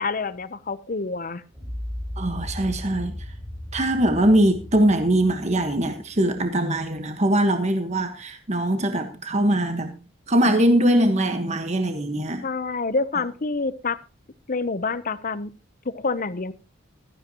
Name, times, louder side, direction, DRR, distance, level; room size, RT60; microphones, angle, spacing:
voice 1, 0.0-1.4 12.4-14.0 14.5-15.5 15.8-16.5, left 4 dB, 40° left, 0.8 m, -27 dB
sound 1, 1.5-7.6, left 1 dB, 15° right, 6.2 m, -37 dB
voice 2, 2.2-3.1 3.7-10.0 10.3-12.4, right 1 dB, 35° right, 1.4 m, -21 dB
16.0 x 13.0 x 3.0 m
head